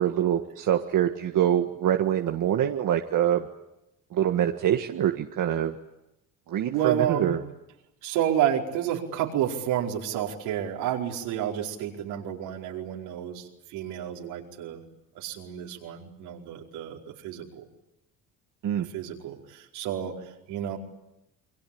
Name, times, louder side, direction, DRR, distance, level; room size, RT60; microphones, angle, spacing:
voice 1, 0.0-3.5 4.1-5.7 6.5-7.4 18.6-18.9, right 10 dB, 60° right, 4 dB, 1.7 m, -25 dB
voice 2, 6.7-7.4 8.0-14.8 15.1-17.7 18.9-20.1 20.5-20.8, right 10 dB, 85° right, 0 dB, 4.9 m, -30 dB
28.5 x 23.0 x 8.7 m, 0.90 s
supercardioid pair, 80°, 36 cm